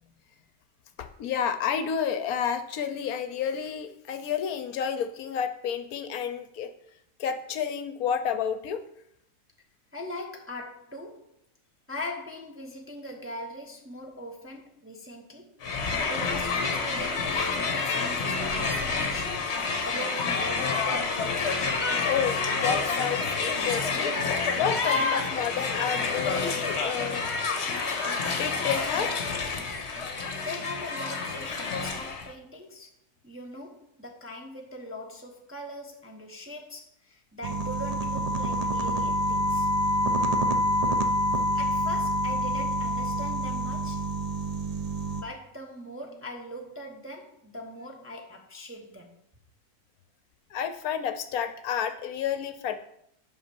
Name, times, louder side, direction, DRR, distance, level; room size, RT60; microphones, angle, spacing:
voice 1, 1.0-6.7 7.2-8.8 22.0-27.3 28.4-29.4 50.5-52.7, left 8 dB, 70° left, 10 dB, 1.1 m, -30 dB
voice 2, 9.9-11.3 11.9-15.5 16.0-21.2 30.4-32.9 33.2-39.7 41.5-44.0 45.1-49.2, left 1 dB, 10° right, 1 dB, 0.7 m, -41 dB
Crowd, 15.6-32.3, left 4 dB, 45° left, 1.2 m, -28 dB
sound 1, 37.4-45.2, equal, 70° right, 0.3 m, -27 dB
8.5 x 5.8 x 4.4 m, 0.72 s
omnidirectional pair, 1.7 m